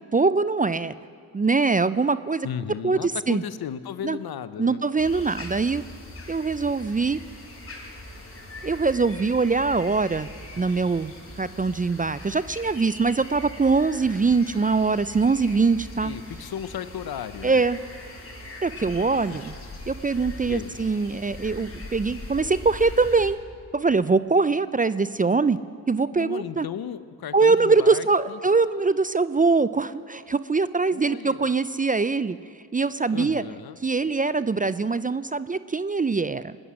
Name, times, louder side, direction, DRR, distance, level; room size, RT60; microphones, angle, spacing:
voice 1, 0.1-0.9 1.3-2.5 2.8-3.4 4.0-4.2 4.6-5.8 6.3-7.2 8.6-10.3 10.6-11.1 11.4-16.1 17.4-17.8 18.6-19.5 19.9-23.4 23.7-25.6 25.9-26.7 27.3-32.4 32.7-33.4 33.8-36.6, right 4 dB, 20° right, 15 dB, 0.4 m, -23 dB
voice 2, 2.4-4.8 16.0-17.6 19.3-19.5 20.5-20.7 26.1-28.4 30.9-31.6 33.1-33.8, left 9 dB, 60° left, 14 dB, 0.8 m, -35 dB
sound 1, 5.0-23.3, left 1 dB, 35° left, 4.6 m, -41 dB
19.0 x 10.0 x 6.3 m, 2.3 s
supercardioid pair, 40°, 41 cm